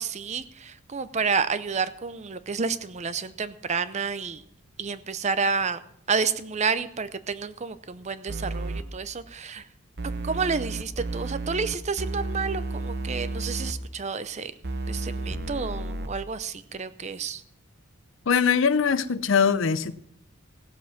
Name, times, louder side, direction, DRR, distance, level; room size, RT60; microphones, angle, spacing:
voice 1, 0.0-4.4 4.8-5.8 6.1-9.7 10.0-14.5 14.9-17.4, right 5 dB, 35° right, 14 dB, 0.5 m, -30 dB
sound 1, 8.3-8.8 10.0-13.7 14.6-16.1, right 2 dB, 50° right, 1.0 m, -32 dB
voice 2, 18.3-19.9, left 6 dB, 60° left, 15 dB, 0.6 m, -22 dB
17.0 x 7.4 x 5.8 m, 0.73 s
head